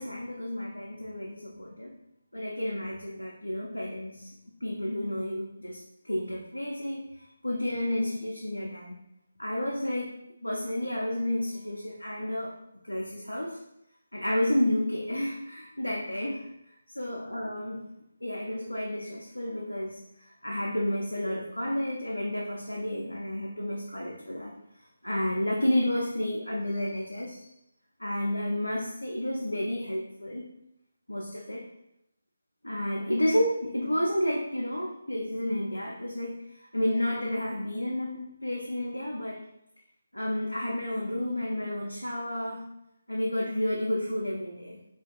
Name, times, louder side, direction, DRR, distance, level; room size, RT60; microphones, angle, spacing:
voice 1, 0.0-1.9 2.3-4.3 4.6-9.0 9.4-10.1 10.4-12.5 12.8-13.6 14.1-17.8 18.2-24.5 25.0-27.5 28.0-30.4 31.1-31.6 32.6-39.4 40.1-42.7 43.1-44.8, left 1 dB, 80° left, -2 dB, 0.4 m, -31 dB
2.4 x 2.4 x 2.6 m, 0.82 s
figure-of-eight pair, 150°, 0 cm